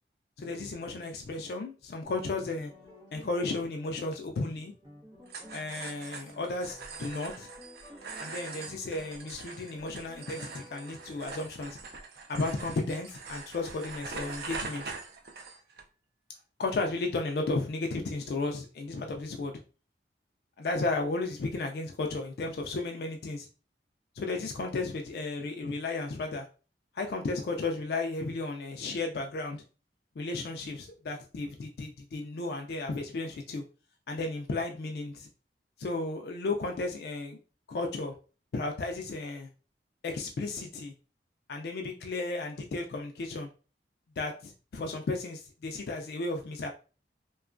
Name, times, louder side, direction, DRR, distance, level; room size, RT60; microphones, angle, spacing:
voice 1, 0.4-2.7 3.1-4.7 5.5-7.5 8.2-11.8 12.3-14.9 16.6-19.5 20.6-23.5 24.2-26.5 26.9-29.6 30.2-33.6 34.1-35.3 35.8-37.4 37.7-38.1 38.5-39.5 40.0-40.9 41.5-43.5 44.2-46.7, left 3 dB, 65° left, 3 dB, 0.3 m, -34 dB
sound 1, 2.0-11.4, equal, 25° right, 0.9 m, -53 dB
sound 2, 5.3-15.8, right 4 dB, 60° right, 0.4 m, -43 dB
2.9 x 2.3 x 2.4 m, 0.35 s
head